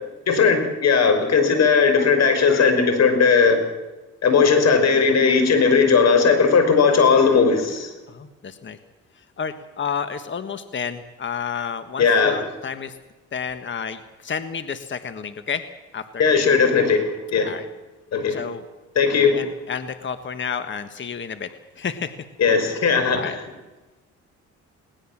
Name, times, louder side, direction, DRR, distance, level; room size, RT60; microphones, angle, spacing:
voice 1, 0.3-3.6 4.2-7.9 12.0-12.4 16.2-17.0 17.3-17.5 18.1-18.4 19.0-19.4 22.4-23.4, left 5 dB, 60° left, 7 dB, 5.5 m, -17 dB
voice 2, 8.1-8.8 9.4-12.9 13.3-15.6 15.9-16.2 17.4-17.6 18.3-18.6 19.1-21.5 21.8-22.1 23.1-23.3, left 6 dB, 40° left, 10 dB, 1.5 m, -31 dB
20.5 x 18.5 x 7.4 m, 1.1 s
cardioid pair, 90°, 30 cm